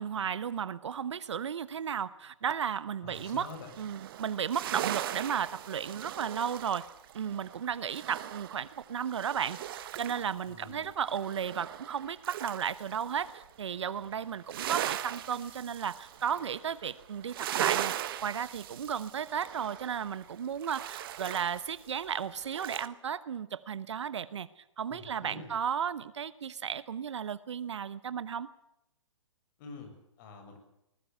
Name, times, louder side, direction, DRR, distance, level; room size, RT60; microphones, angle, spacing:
voice 1, 0.0-3.5 3.8-6.8 7.1-17.9 18.2-28.5, right 8 dB, 65° right, 16 dB, 1.0 m, -34 dB
voice 2, 3.0-3.7 10.5-10.9 24.9-25.5 29.6-30.6, left 3 dB, 40° left, 6 dB, 6.9 m, -47 dB
sound 1, 3.1-10.4 10.7-13.5 13.8-22.9, right 12 dB, 45° right, 1.4 m, -39 dB
21.0 x 20.0 x 8.2 m, 0.83 s
figure-of-eight pair, 125°, 16 cm